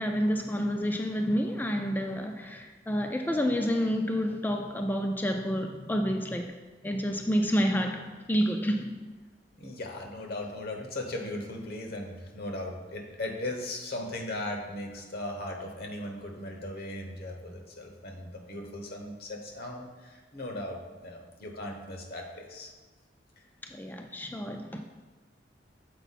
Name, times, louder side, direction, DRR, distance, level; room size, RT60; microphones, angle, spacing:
voice 1, 0.0-6.5 6.8-8.9 23.7-24.8, equal, 10° left, 4 dB, 0.3 m, -29 dB
voice 2, 9.6-22.7, left 1 dB, 60° left, 2 dB, 1.0 m, -38 dB
6.9 x 4.5 x 4.1 m, 1.3 s
head